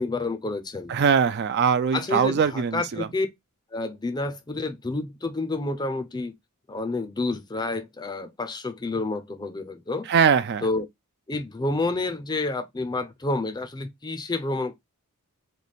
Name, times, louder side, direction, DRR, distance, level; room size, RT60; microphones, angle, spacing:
voice 1, 0.0-0.9 1.9-3.3 3.7-6.3 6.7-10.1 10.6-10.9 11.3-14.8, left 2 dB, 20° left, 0.5 m, -29 dB
voice 2, 0.9-3.1 10.1-10.7, right 6 dB, 50° right, 0.4 m, -22 dB
3.2 x 2.2 x 4.0 m
head